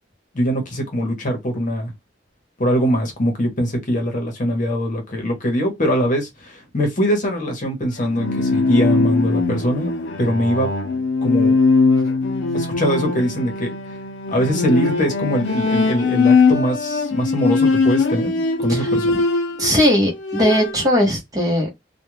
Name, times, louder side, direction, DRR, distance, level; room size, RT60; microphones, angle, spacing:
voice 1, 0.3-1.9 2.6-9.9 10.2-10.7 11.2-11.5 12.5-13.7 14.3-19.2, equal, 45° left, 0.9 m, -22 dB
Bowed string instrument, 8.0-19.8 20.1-20.9, left 4 dB, 80° left, 0.6 m, -20 dB
voice 2, 19.6-21.7, equal, 20° right, 0.9 m, -18 dB
2.3 x 2.2 x 3.0 m
head